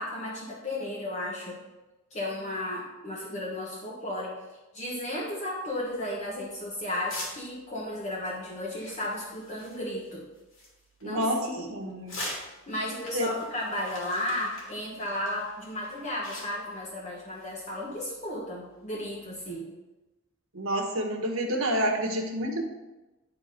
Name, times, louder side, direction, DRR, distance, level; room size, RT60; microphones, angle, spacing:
voice 1, 0.0-1.6 2.1-4.4 4.7-10.3 11.0-11.7 12.7-19.7, left 1 dB, 35° left, -4 dB, 1.2 m, -34 dB
sound 1, 5.7-19.5, left 1 dB, 70° left, 2.7 m, -46 dB
voice 2, 11.0-12.2 13.1-13.3 20.5-22.6, right 1 dB, 85° right, 2 dB, 1.4 m, -28 dB
10.5 x 3.8 x 5.1 m, 1.1 s
head